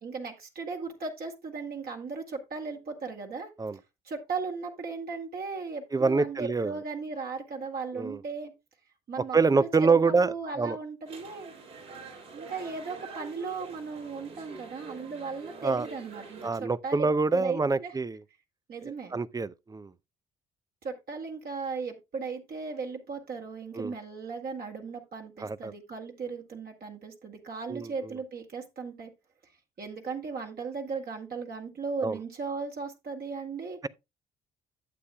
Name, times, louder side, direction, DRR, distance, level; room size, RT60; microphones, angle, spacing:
voice 1, 0.0-3.5 4.0-8.5 9.1-11.5 12.3-18.0 18.7-19.2 20.8-29.1 29.8-33.8, right 4 dB, 50° right, 2.1 m, -37 dB
voice 2, 5.9-6.7 7.9-8.2 9.3-10.8 15.6-15.9 16.4-18.2 19.1-19.9 23.7-23.9 25.4-25.7 27.7-27.9 32.0-32.2, right 4 dB, 20° right, 0.5 m, -26 dB
sound 1, 11.0-16.5, right 4 dB, 80° right, 4.7 m, -46 dB
11.5 x 8.1 x 2.3 m
hypercardioid pair, 50°, 20 cm